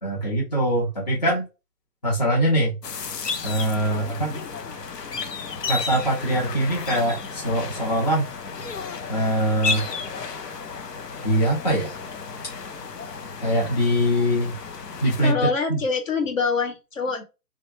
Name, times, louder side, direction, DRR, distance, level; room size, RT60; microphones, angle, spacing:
voice 1, 0.0-1.4 2.0-2.7 3.4-4.4 5.7-8.3 9.1-9.9 11.2-12.0 13.4-14.5 15.0-15.4 15.7-15.8, equal, 25° left, -4 dB, 0.7 m, -23 dB
sound 1, 2.8-15.3, left 5 dB, 75° left, 0.8 m, -33 dB
voice 2, 15.2-17.2, left 5 dB, 55° left, 4 dB, 1.2 m, -25 dB
3.3 x 2.3 x 3.2 m, 0.27 s
hypercardioid pair, 165°, 48 cm